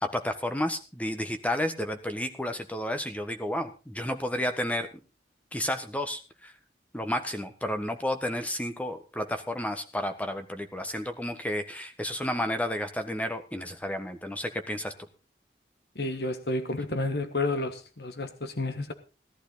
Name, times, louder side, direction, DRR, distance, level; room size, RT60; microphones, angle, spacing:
voice 1, 0.0-4.9 5.5-6.5 6.9-14.9, left 1 dB, 10° left, 7 dB, 1.4 m, -31 dB
voice 2, 15.9-18.9, left 2 dB, 65° left, 9 dB, 1.4 m, -31 dB
17.5 x 11.5 x 4.0 m, 0.33 s
head